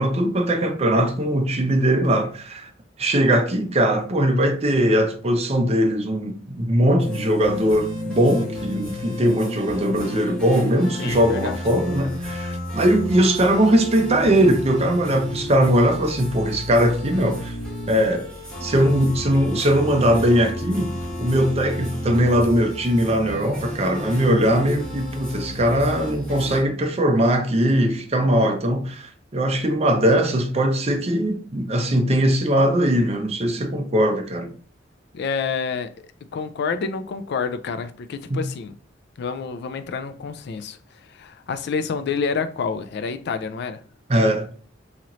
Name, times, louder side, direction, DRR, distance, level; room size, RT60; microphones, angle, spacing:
voice 1, 0.0-2.7 3.0-17.6 17.9-18.3 18.6-20.9 21.2-34.5 38.3-38.4 44.1-44.5, equal, 35° right, 0.6 m, -20 dB
sound 1, 7.0-26.6, left 1 dB, 5° left, 1.2 m, -32 dB
voice 2, 11.0-11.6 35.1-35.9 36.3-38.7 39.2-43.8, left 5 dB, 60° left, 0.3 m, -28 dB
3.1 x 2.9 x 3.8 m
head